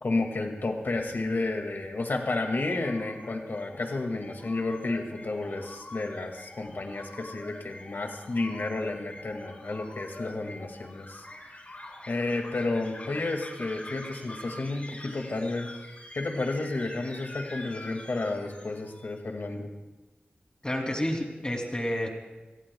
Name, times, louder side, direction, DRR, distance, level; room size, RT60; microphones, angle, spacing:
voice 1, 0.0-11.2 12.1-15.7 16.2-19.7, left 2 dB, 70° left, 3 dB, 2.2 m, -31 dB
sound 1, 2.6-19.1, left 1 dB, 40° left, 3.5 m, -45 dB
voice 2, 20.6-22.1, left 1 dB, 25° left, 1 dB, 3.0 m, -30 dB
27.5 x 18.0 x 2.3 m, 1.1 s
wide cardioid pair, 80°, 4 cm